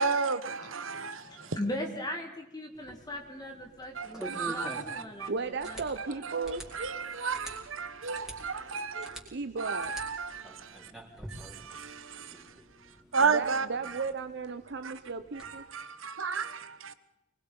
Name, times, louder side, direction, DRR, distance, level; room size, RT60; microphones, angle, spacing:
voice 1, 0.0-1.6 3.9-5.3 6.2-9.2 9.6-10.9 11.7-12.4 13.1-13.7 14.8-14.9 15.4-16.9, right 5 dB, 80° right, 1.4 m, -33 dB
voice 2, 0.6-6.2, left 1 dB, 20° left, 1.8 m, -39 dB
sound 1, 2.7-15.5, right 1 dB, ahead, 4.3 m, -48 dB
voice 3, 5.3-6.7 9.3-9.9 13.2-15.6, right 4 dB, 60° right, 0.8 m, -35 dB
24.0 x 21.0 x 5.4 m
head